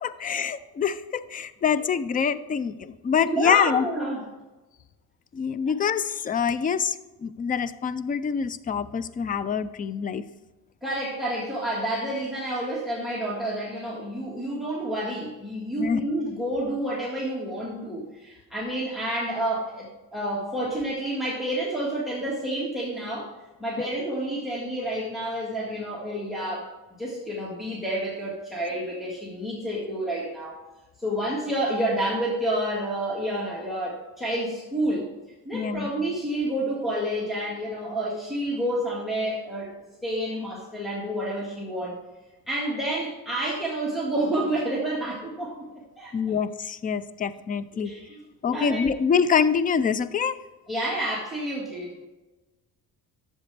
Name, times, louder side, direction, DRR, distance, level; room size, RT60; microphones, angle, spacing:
voice 1, 0.0-3.9 5.3-10.2 15.8-16.0 23.8-23.9 35.5-35.9 46.1-47.9 48.4-50.4, left 6 dB, 25° left, 15 dB, 0.4 m, -25 dB
voice 2, 3.3-4.2 10.8-19.9 20.1-23.3 23.6-26.7 27.0-30.6 31.0-35.1 35.5-39.7 40.0-42.0 42.5-45.7 46.0-46.2 47.8-48.2 48.5-48.9 50.7-51.9, right 1 dB, ahead, -4 dB, 1.8 m, -29 dB
12.0 x 7.4 x 3.3 m, 1.1 s
cardioid pair, 135°, 36 cm